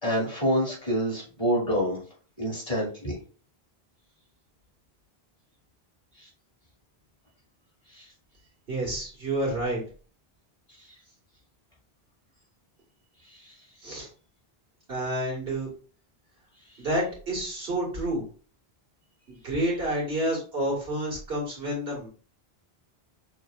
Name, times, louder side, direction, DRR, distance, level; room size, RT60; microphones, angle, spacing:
voice 1, 0.0-2.0 2.4-3.2 7.9-8.1 13.3-13.5, equal, 35° left, -5 dB, 2.5 m, -27 dB
voice 2, 8.7-9.8 13.8-14.1 14.9-15.7 16.8-18.2 19.3-22.1, right 1 dB, 75° right, -4 dB, 2.1 m, -29 dB
6.3 x 3.2 x 2.4 m, 0.38 s
omnidirectional pair, 1.0 m